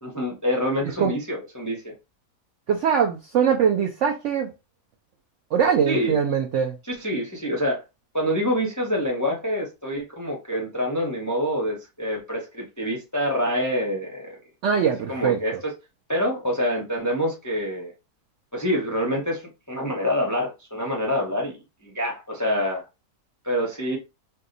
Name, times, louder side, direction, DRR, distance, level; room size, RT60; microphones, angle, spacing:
voice 1, 0.0-1.9 5.9-6.2 6.9-7.8 8.1-14.4 15.1-15.7 16.1-17.9 18.5-21.6 21.8-22.9 23.4-24.0, equal, 20° left, 0.4 m, -26 dB
voice 2, 2.7-4.5 5.5-6.7 14.6-15.6, right 7 dB, 65° right, 0.8 m, -22 dB
2.7 x 2.3 x 3.7 m
omnidirectional pair, 1.6 m